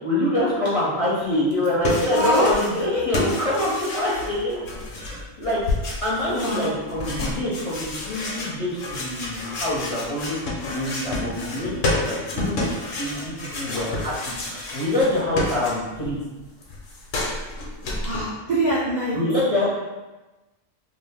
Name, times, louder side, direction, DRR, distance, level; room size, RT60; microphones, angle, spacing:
voice 1, 0.0-4.6 4.9-5.6 6.0-10.4 10.6-12.7 13.0-16.2 19.1-19.7, left 1 dB, 40° left, -8 dB, 0.5 m, -25 dB
sound 1, 1.5-2.9 3.1-16.1 16.4-18.2, left 2 dB, 80° left, 1.0 m, -30 dB
voice 2, 2.1-2.5 2.9-3.0 6.3-6.8 18.0-19.2, right 1 dB, 55° right, -7 dB, 0.5 m, -24 dB
2.6 x 2.5 x 3.3 m, 1.1 s
omnidirectional pair, 1.3 m